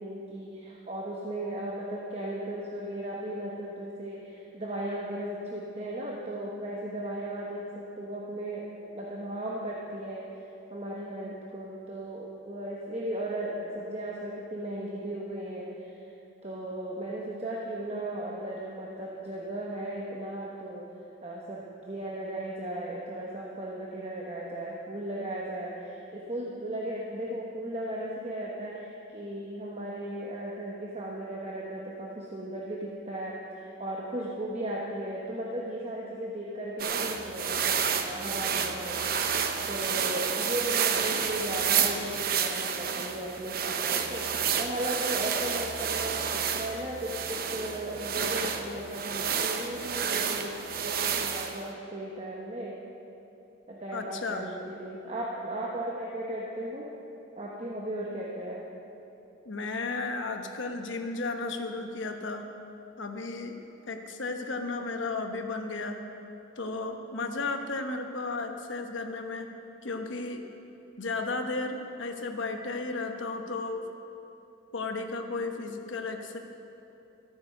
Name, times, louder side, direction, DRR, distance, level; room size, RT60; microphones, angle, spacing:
voice 1, 0.0-10.3 10.7-16.1 16.4-20.9 21.2-52.8 53.7-56.9 57.4-58.6, right 1 dB, 30° right, -3 dB, 1.0 m, -36 dB
sound 1, 36.8-51.6, right 7 dB, 45° right, 0.7 m, -30 dB
voice 2, 53.9-54.5 59.4-62.4 63.0-63.5 63.9-66.0 66.6-69.5 69.8-70.4 71.0-73.8 74.7-76.4, left 3 dB, 70° left, 5 dB, 1.0 m, -34 dB
13.5 x 8.6 x 6.6 m, 2.9 s
head